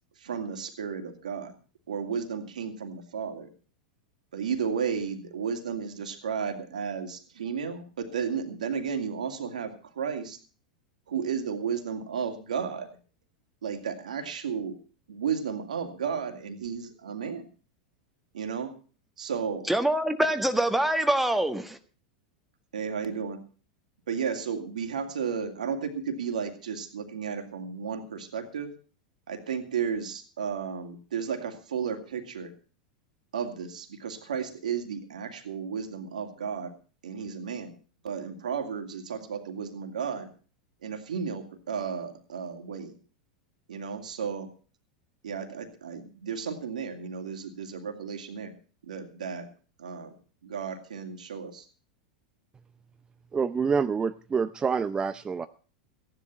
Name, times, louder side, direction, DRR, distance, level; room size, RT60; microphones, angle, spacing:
voice 1, 0.2-1.5 1.9-3.5 4.3-10.4 11.1-12.9 13.6-14.8 15.1-17.5 18.3-18.7 19.2-19.6 22.7-23.4 24.1-28.7 29.3-32.5 33.3-36.7 37.0-37.8 38.0-40.3 40.8-42.9 43.7-44.5 45.2-48.5 48.8-49.5 49.8-50.1 50.4-51.7, right 6 dB, 80° right, 2.5 m, -33 dB
voice 2, 19.7-21.8, right 1 dB, 5° right, 1.5 m, -25 dB
voice 3, 53.3-55.5, right 5 dB, 20° right, 0.6 m, -27 dB
15.5 x 11.0 x 5.7 m
hypercardioid pair, 95°, 4 cm